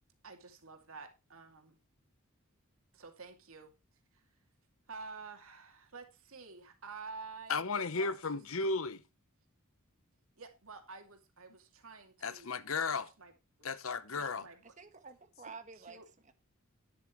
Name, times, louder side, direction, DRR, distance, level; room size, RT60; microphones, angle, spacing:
voice 1, 0.2-1.8 2.9-3.7 4.1-4.2 4.9-8.1 8.6-8.7 10.4-12.5 12.9-13.3 13.6-13.7 14.1-14.7 15.8-16.0, right 4 dB, 65° right, 2.6 m, -50 dB
voice 2, 7.5-9.0 12.2-13.1 13.6-14.4, left 4 dB, 65° left, 1.0 m, -34 dB
voice 3, 14.6-16.3, right 4 dB, 35° right, 1.5 m, -51 dB
11.0 x 10.5 x 3.1 m
head